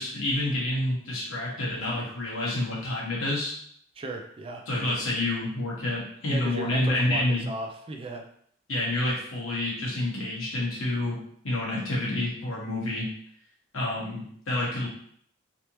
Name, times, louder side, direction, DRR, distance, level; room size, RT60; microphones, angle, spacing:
voice 1, 0.0-3.6 4.7-7.5 8.7-11.2 11.4-13.1 13.7-14.9, left 1 dB, 80° left, -5 dB, 1.3 m, -28 dB
voice 2, 4.0-4.6 6.3-8.2, right 2 dB, 25° right, 3 dB, 0.3 m, -36 dB
3.3 x 2.8 x 2.9 m, 0.64 s
head